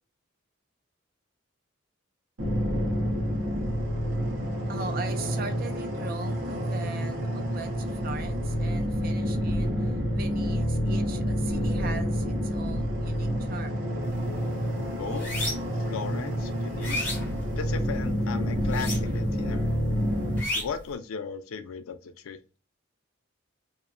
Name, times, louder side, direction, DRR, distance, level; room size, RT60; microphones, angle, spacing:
sound 1, 2.4-20.4, equal, 65° right, 1.0 m, -28 dB
voice 1, 4.1-9.7 10.1-13.9, right 4 dB, 45° right, 0.4 m, -40 dB
sound 2, 14.1-14.3 14.7-15.8 16.3-18.0 18.6-19.4 19.6-20.9, left 1 dB, 10° left, 1.1 m, -33 dB
voice 2, 15.0-15.5 15.8-17.1 17.6-19.8 20.5-22.4, left 5 dB, 90° left, 0.4 m, -36 dB
2.8 x 2.1 x 2.5 m
head